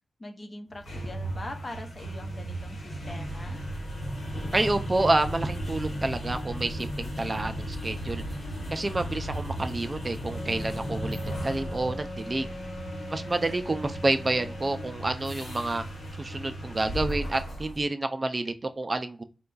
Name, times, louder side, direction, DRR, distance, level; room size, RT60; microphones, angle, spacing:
voice 1, 0.2-3.6, left 2 dB, 40° left, 4 dB, 0.8 m, -42 dB
sound 1, 0.7-17.8, right 1 dB, 85° left, 1.3 m, -35 dB
voice 2, 4.5-8.2 8.7-12.5 13.1-15.8 16.2-19.2, right 2 dB, 35° right, 8 dB, 0.4 m, -29 dB
Wind instrument woodwind instrument, 10.3-15.0, left 2 dB, 20° left, 1.2 m, -41 dB
4.2 x 2.3 x 3.8 m, 0.35 s
cardioid pair, 55°, 0 cm